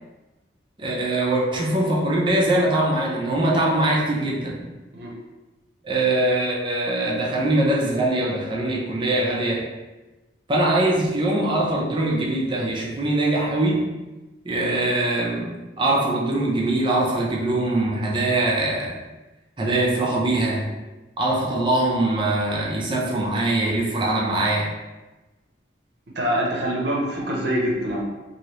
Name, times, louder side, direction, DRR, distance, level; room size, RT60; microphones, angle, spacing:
voice 1, 0.8-4.6 5.8-9.7 10.5-13.9 14.4-19.0 19.6-20.7 21.2-24.7, right 1 dB, 25° right, -3 dB, 0.5 m, -22 dB
voice 2, 26.1-28.0, equal, 60° right, -2 dB, 0.7 m, -24 dB
2.9 x 2.7 x 3.0 m, 1.1 s
head